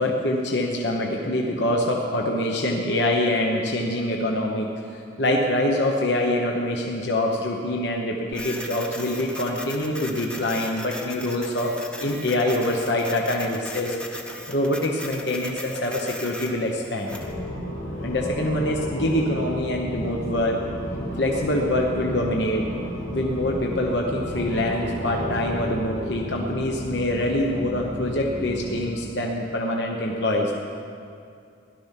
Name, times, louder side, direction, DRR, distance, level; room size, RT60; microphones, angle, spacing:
voice 1, 0.0-14.0 14.5-17.2 18.0-20.6 21.2-22.7 23.1-30.5, left 1 dB, 60° left, 0 dB, 1.1 m, -25 dB
Printer, 8.3-17.3, left 1 dB, 5° left, 0.9 m, -38 dB
sound 1, 17.1-28.9, equal, 85° left, 3.8 m, -33 dB
17.0 x 12.0 x 5.9 m, 2.5 s
head